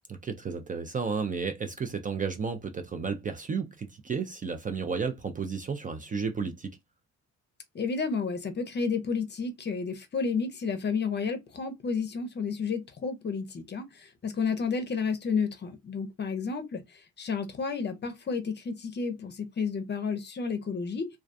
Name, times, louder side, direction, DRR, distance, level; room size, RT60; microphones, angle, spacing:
voice 1, 0.2-6.8, right 5 dB, 30° right, 0.4 m, -32 dB
voice 2, 7.7-16.8 17.2-21.1, left 5 dB, 35° left, 0.6 m, -31 dB
2.3 x 2.2 x 2.5 m
cardioid pair, 90°, 30 cm